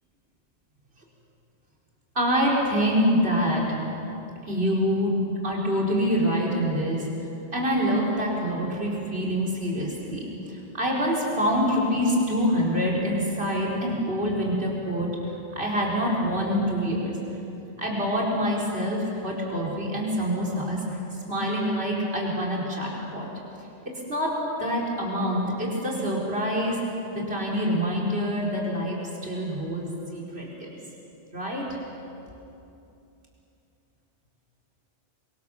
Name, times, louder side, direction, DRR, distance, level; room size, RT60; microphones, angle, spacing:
voice 1, 2.1-3.6 4.4-5.1 5.4-7.1 7.5-17.2 17.8-20.8 21.3-23.3 23.8-26.8 27.1-30.8 31.3-31.7, equal, 65° right, -3 dB, 4.9 m, -26 dB
28.0 x 24.5 x 7.0 m, 2.8 s
omnidirectional pair, 1.1 m